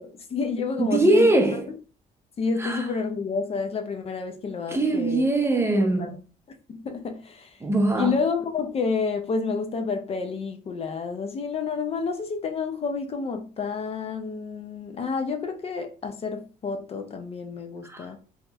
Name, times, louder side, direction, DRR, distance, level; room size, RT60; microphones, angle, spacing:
voice 1, 0.0-1.3 1.7-1.8 2.4-5.2 5.8-6.2 6.7-7.6 8.0-18.2, left 5 dB, 35° left, 0.5 m, -29 dB
voice 2, 0.8-1.7 2.6-2.9 4.7-6.1 7.6-8.1 17.8-18.1, right 2 dB, 15° right, 0.6 m, -21 dB
2.8 x 2.8 x 2.3 m
cardioid pair, 110°, 17 cm